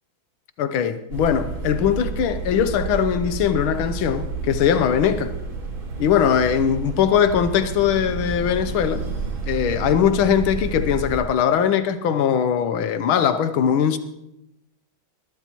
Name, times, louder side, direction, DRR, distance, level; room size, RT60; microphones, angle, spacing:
voice 1, 0.6-5.3 6.0-9.0 9.5-14.0, left 8 dB, 90° left, 1.7 m, -20 dB
sound 1, 1.1-11.2, right 3 dB, 80° right, 3.0 m, -30 dB
20.5 x 12.5 x 3.0 m
omnidirectional pair, 2.2 m